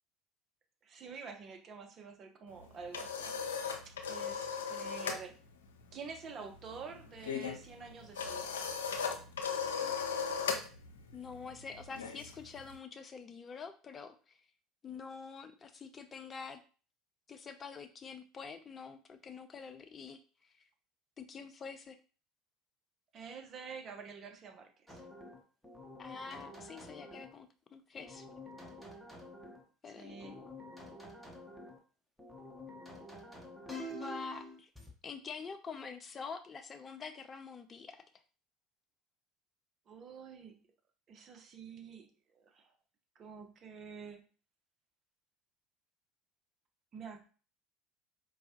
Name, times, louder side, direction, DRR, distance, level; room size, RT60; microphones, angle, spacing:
voice 1, 0.8-3.3 3.8-5.4 5.9-8.6 23.1-25.1 29.9-30.4 39.9-40.6 41.1-42.7 43.1-44.3 46.9-47.2, right 5 dB, 45° right, 4 dB, 0.9 m, -48 dB
sound 1, 2.6-5.3 5.5-5.8 6.1-12.8, left 6 dB, 85° left, 0.5 m, -38 dB
voice 2, 11.1-14.2 14.8-16.6 17.3-20.2 21.2-22.0 26.0-28.3 29.8-30.5 33.9-34.7 35.0-38.0, left 5 dB, 30° left, 9 dB, 0.6 m, -46 dB
sound 2, 24.9-27.4 28.0-29.6 30.1-31.8 32.2-34.9, left 1 dB, ahead, 1.0 m, -48 dB
4.5 x 2.3 x 2.8 m, 0.37 s
hypercardioid pair, 75°, 0 cm